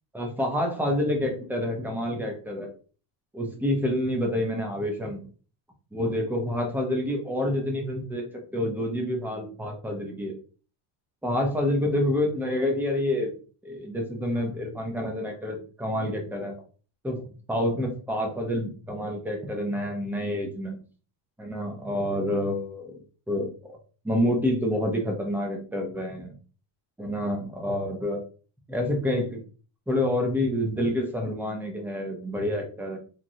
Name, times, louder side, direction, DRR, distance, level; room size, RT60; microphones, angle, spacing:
voice 1, 0.1-2.7 3.3-5.2 5.9-10.4 11.2-13.3 13.6-16.5 17.0-20.8 21.4-23.0 23.3-23.8 24.0-26.4 27.0-28.2 28.7-29.4 29.9-33.0, left 1 dB, 5° right, 1 dB, 0.5 m, -28 dB
3.0 x 2.4 x 2.6 m, 0.38 s
cardioid pair, 150°, 48 cm